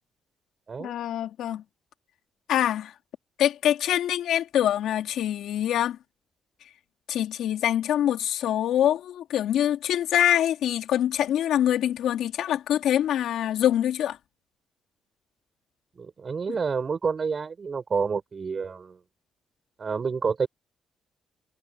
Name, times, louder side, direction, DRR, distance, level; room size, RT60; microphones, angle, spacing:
voice 1, 0.8-1.6 2.5-2.9 3.4-6.0 7.1-14.2 16.5-16.6, left 11 dB, 80° left, 2.7 m, -24 dB
voice 2, 16.0-19.0 19.8-20.5, right 5 dB, 40° right, 6.5 m, -28 dB
cardioid pair, 90°, 0 cm